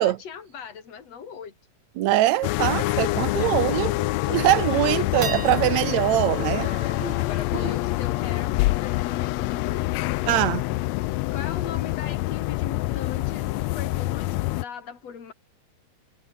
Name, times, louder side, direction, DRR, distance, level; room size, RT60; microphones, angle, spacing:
voice 1, 0.0-1.5 2.9-4.9 6.6-10.0 11.3-15.3, left 7 dB, 60° left, 4.5 m, -40 dB
sound 1, 1.7-1.8 2.1-2.2 2.6-2.8 3.3-3.4 3.9-4.3 4.7-11.3, right 5 dB, 45° right, 3.9 m, -40 dB
voice 2, 2.0-3.9 4.3-6.7 7.0-7.1 10.3-10.7, right 15 dB, 75° right, 2.1 m, -22 dB
sound 2, 2.4-14.6, left 19 dB, 80° left, 1.7 m, -26 dB
omnidirectional pair, 3.3 m